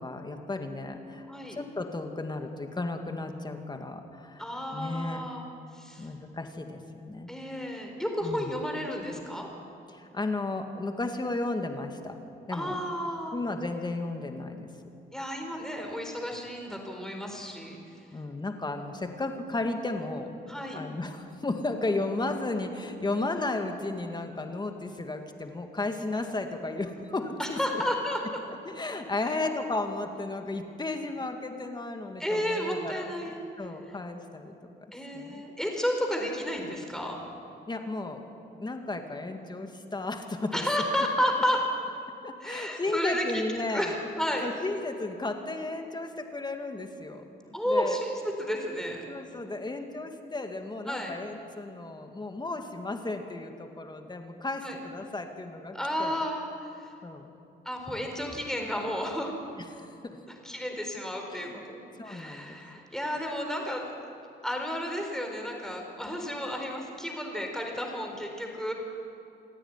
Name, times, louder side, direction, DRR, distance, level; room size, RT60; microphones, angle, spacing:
voice 1, 0.0-4.4 4.7-5.2 6.0-7.3 8.2-8.5 9.9-12.2 12.5-12.8 13.3-14.7 18.1-20.3 20.7-27.8 28.7-34.5 35.1-35.4 37.7-38.2 38.6-40.7 42.2-44.0 44.4-47.2 47.7-48.0 49.1-56.2 57.0-57.3 59.7-60.2 61.3-61.6 62.0-62.6, left 2 dB, 20° left, 5 dB, 2.1 m, -34 dB
voice 2, 1.3-1.6 4.4-5.4 5.7-6.1 7.3-9.5 12.5-13.4 15.1-17.8 20.5-20.8 27.4-28.2 29.2-29.3 32.2-33.4 34.9-37.2 40.5-41.7 42.4-43.4 43.7-44.5 47.5-49.0 50.9-51.1 54.6-54.8 55.7-56.9 57.6-59.3 60.4-63.9 64.4-68.7, equal, 5° left, 2 dB, 4.4 m, -32 dB
27.5 x 9.8 x 9.7 m, 2.7 s
cardioid pair, 90°, 20 cm